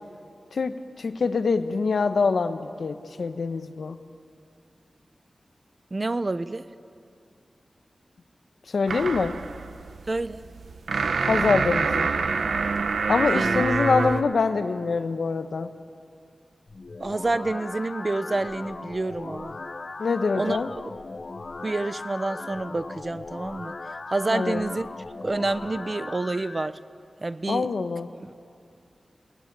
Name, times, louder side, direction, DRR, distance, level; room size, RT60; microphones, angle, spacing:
voice 1, 0.5-4.0 8.7-9.4 11.3-12.1 13.1-15.7 20.0-20.7 24.3-24.6 27.5-28.1, left 4 dB, 80° left, 9 dB, 1.2 m, -25 dB
voice 2, 5.9-6.7 10.1-10.4 13.3-13.7 17.0-19.5 20.4-20.6 21.6-23.7 24.1-24.9 25.2-26.8 27.2-27.7 28.2-28.3, right 2 dB, 35° right, 13 dB, 0.8 m, -28 dB
sound 1, 8.9-14.2, right 4 dB, 90° right, 0.9 m, -26 dB
sound 2, 16.7-26.7, left 3 dB, 50° left, 0.8 m, -38 dB
29.0 x 20.0 x 8.9 m, 2.4 s
wide cardioid pair, 80°, 0 cm